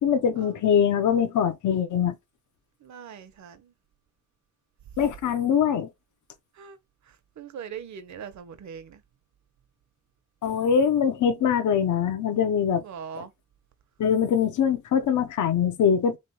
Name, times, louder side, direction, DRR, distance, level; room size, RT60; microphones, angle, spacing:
voice 1, 0.0-2.2 5.0-5.9 10.4-12.8 14.0-16.2, left 7 dB, 80° left, 0.7 m, -23 dB
voice 2, 2.8-3.7 6.5-6.8 7.0-9.0 12.8-13.3, right 7 dB, 75° right, 0.9 m, -41 dB
3.8 x 3.2 x 2.8 m
wide cardioid pair, 150°, 29 cm